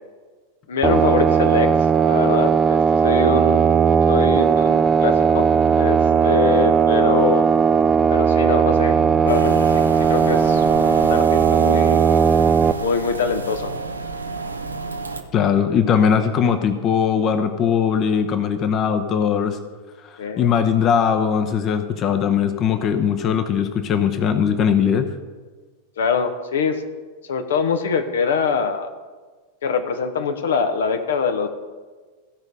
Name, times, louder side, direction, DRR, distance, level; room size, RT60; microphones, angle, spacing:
voice 1, 0.7-1.7 2.1-3.6 4.1-7.5 8.1-12.0 12.8-13.7 20.2-20.5 26.0-26.8 27.3-28.9 29.6-31.5, left 5 dB, 60° left, 7 dB, 0.9 m, -24 dB
sound 1, 0.8-12.7, right 7 dB, 15° right, 0.5 m, -17 dB
sound 2, 9.3-15.2, right 4 dB, 80° right, 0.8 m, -30 dB
voice 2, 15.3-19.6 20.4-25.1, left 7 dB, 30° left, 7 dB, 0.9 m, -20 dB
15.0 x 5.3 x 6.3 m, 1.4 s
figure-of-eight pair, 90°, 0 cm